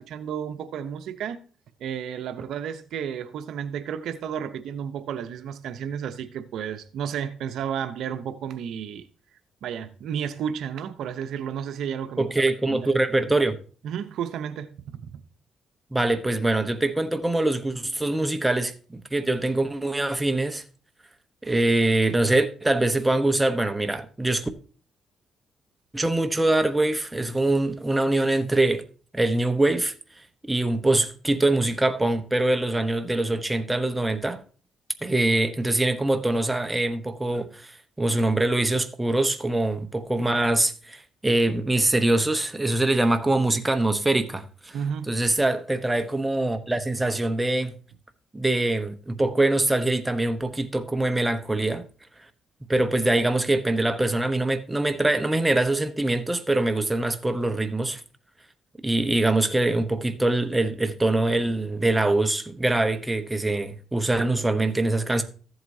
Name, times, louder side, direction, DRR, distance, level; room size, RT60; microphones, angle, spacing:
voice 1, 0.0-1.4 1.8-9.1 9.6-12.9 13.8-15.1 44.7-45.1, right 8 dB, 75° right, 0.7 m, -32 dB
voice 2, 12.2-13.6 15.9-20.6 21.4-24.5 25.9-28.8 29.1-29.9 30.4-34.4 35.0-37.7 38.0-44.8 45.1-47.7 48.3-51.8 52.7-58.0 58.8-65.2, right 2 dB, 10° right, 0.9 m, -23 dB
14.0 x 7.9 x 2.7 m
cardioid pair, 90°, 0 cm